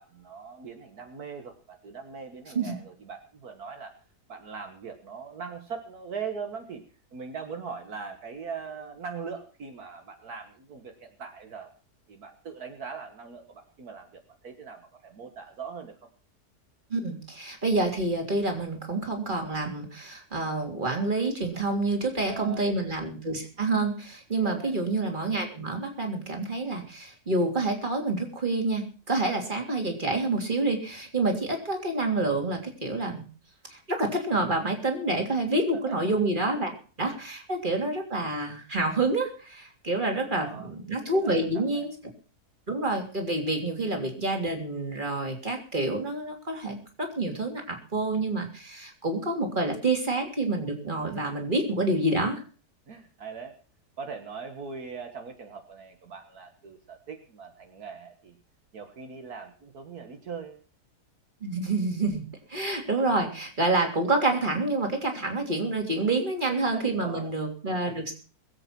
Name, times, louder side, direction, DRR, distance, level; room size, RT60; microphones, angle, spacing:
voice 1, 0.0-4.0 4.3-6.8 7.1-11.7 12.1-15.9 22.2-22.8 24.4-24.7 35.7-36.0 40.2-40.7 41.0-41.8 52.9-53.6 54.0-58.4 58.7-60.6 66.6-67.3, right 5 dB, 70° right, 5 dB, 2.0 m, -41 dB
voice 2, 16.9-33.2 33.7-41.9 42.7-52.4 61.4-62.2 62.5-68.1, right 2 dB, 30° right, 3 dB, 3.3 m, -28 dB
21.0 x 8.3 x 5.9 m, 0.38 s
omnidirectional pair, 1.7 m